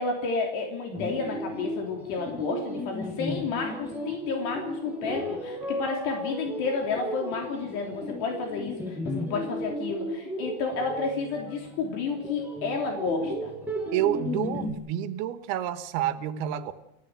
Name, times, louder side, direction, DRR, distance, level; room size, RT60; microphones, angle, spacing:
voice 1, 0.0-13.5, left 4 dB, 80° left, 2 dB, 5.3 m, -31 dB
sound 1, 0.9-14.7, left 1 dB, ahead, 5.4 m, -35 dB
voice 2, 13.9-16.7, right 11 dB, 75° right, 11 dB, 3.1 m, -29 dB
30.0 x 16.0 x 7.9 m, 0.88 s
omnidirectional pair, 4.8 m